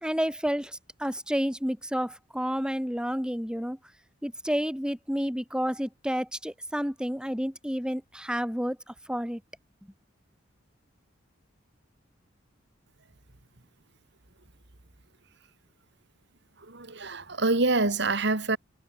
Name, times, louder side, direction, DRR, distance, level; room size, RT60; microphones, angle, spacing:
voice 1, 0.0-3.8 4.2-8.8 9.1-9.4, equal, 5° right, 4.7 m, -30 dB
voice 2, 16.6-18.6, right 3 dB, 60° right, 2.6 m, -26 dB
head